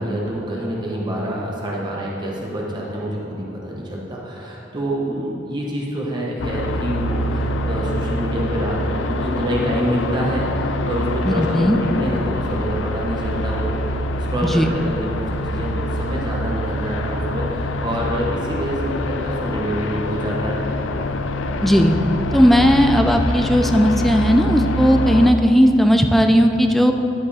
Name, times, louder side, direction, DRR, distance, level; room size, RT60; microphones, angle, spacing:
voice 1, 0.0-20.6, equal, 25° right, -3 dB, 1.0 m, -26 dB
sound 1, 6.4-25.3, left 1 dB, 80° left, 0.4 m, -25 dB
voice 2, 11.3-11.8 14.4-14.7 21.6-21.9 22.3-26.9, equal, ahead, 5 dB, 0.3 m, -16 dB
10.5 x 5.3 x 4.1 m, 2.9 s
head